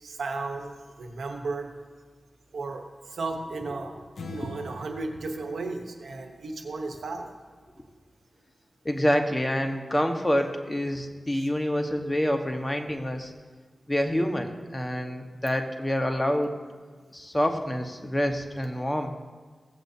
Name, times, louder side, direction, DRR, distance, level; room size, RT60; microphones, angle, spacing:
voice 1, 0.0-1.7 2.5-4.0 4.3-7.3 11.3-11.4, right 3 dB, 85° right, 4 dB, 1.0 m, -34 dB
sound 1, 4.2-6.8, left 2 dB, 85° left, 0.7 m, -44 dB
voice 2, 8.8-13.3 13.9-16.5 17.1-19.1, equal, 20° left, 5 dB, 1.2 m, -27 dB
16.5 x 7.9 x 2.7 m, 1.5 s
cardioid pair, 40°, 0 cm